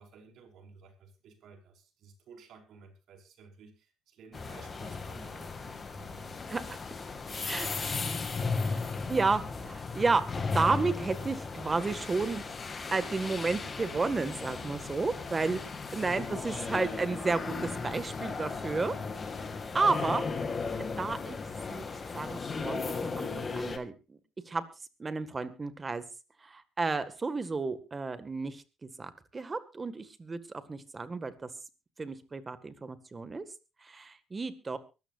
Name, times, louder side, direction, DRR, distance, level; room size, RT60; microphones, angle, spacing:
voice 1, 0.0-6.8 7.1-8.2 8.5-9.0, right 5 dB, 65° right, 4 dB, 5.4 m, -55 dB
sound 1, 4.3-23.8, left 4 dB, 30° left, 2.4 m, -36 dB
voice 2, 6.5-6.8 7.5-7.7 9.1-10.2 10.5-12.4 12.9-19.0 19.7-20.2 20.8-21.4 21.7-21.9 22.1-24.2 24.5-24.6 25.0-26.0 26.4-31.5 32.0-33.4 33.8-34.8, right 3 dB, 25° right, 12 dB, 2.0 m, -32 dB
23.5 x 13.5 x 2.6 m, 0.29 s
cardioid pair, 105°, 0 cm